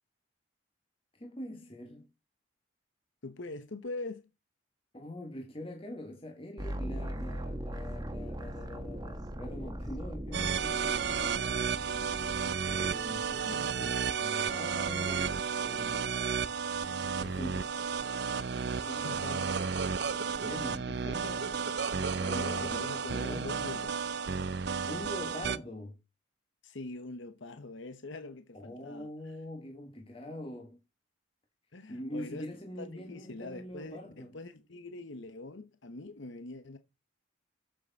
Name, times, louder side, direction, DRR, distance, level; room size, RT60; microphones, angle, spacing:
voice 1, 1.1-2.1 4.9-11.4 12.7-16.1 17.2-17.7 18.7-19.6 20.4-21.5 22.1-23.6 24.9-26.0 28.5-30.8 31.9-34.4, left 1 dB, 25° left, 1.4 m, -43 dB
voice 2, 3.2-4.3 18.9-19.6 20.4-20.6 22.3-24.1 26.6-29.1 31.7-32.5 32.8-36.8, left 2 dB, 70° left, 1.0 m, -43 dB
sound 1, 6.6-13.4, equal, 20° right, 1.3 m, -40 dB
sound 2, 10.3-25.6, right 6 dB, 55° right, 0.6 m, -32 dB
7.8 x 7.7 x 4.1 m
head